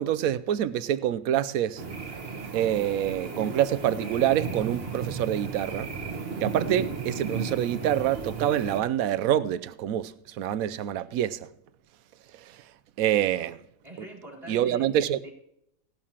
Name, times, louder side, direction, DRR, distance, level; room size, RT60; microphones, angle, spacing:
voice 1, 0.0-1.8 2.5-5.9 6.4-11.5 13.0-13.6 14.5-15.2, right 11 dB, 85° right, 1.0 m, -26 dB
sound 1, 1.8-8.8, right 5 dB, 45° right, 1.4 m, -34 dB
voice 2, 13.8-15.3, right 1 dB, 30° right, 3.8 m, -44 dB
17.5 x 12.0 x 2.9 m
omnidirectional pair, 1.4 m